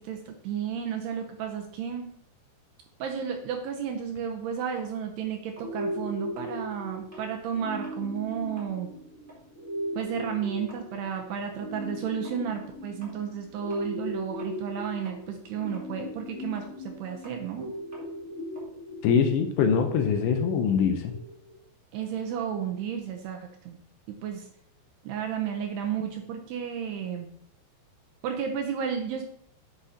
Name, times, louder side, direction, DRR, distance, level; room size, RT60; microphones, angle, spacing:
voice 1, 0.0-2.1 3.0-8.9 10.0-17.7 21.9-23.8 24.1-24.5 25.0-27.3 28.2-29.2, right 8 dB, 75° right, 3 dB, 2.6 m, -32 dB
sound 1, 4.7-7.4 7.7-8.1 8.4-14.8 15.0-19.8, right 2 dB, 15° right, 2.5 m, -54 dB
sound 2, 5.6-21.5, equal, 25° left, 2.1 m, -38 dB
voice 2, 19.0-21.1, left 6 dB, 80° left, 5 dB, 2.7 m, -23 dB
10.5 x 7.8 x 2.9 m, 0.65 s
omnidirectional pair, 5.4 m